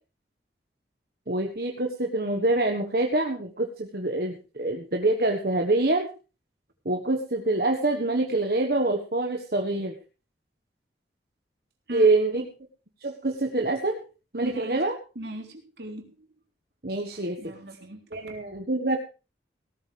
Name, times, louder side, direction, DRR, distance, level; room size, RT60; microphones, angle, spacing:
voice 1, 1.3-6.1 6.8-10.0 11.9-12.4 13.0-14.0 14.3-14.9 16.8-17.4 18.1-19.0, right 2 dB, 55° right, 2 dB, 1.5 m, -25 dB
voice 2, 14.4-14.8 15.2-16.3 17.4-18.4, right 1 dB, 75° right, 2 dB, 3.6 m, -40 dB
17.5 x 13.5 x 3.5 m, 0.33 s
head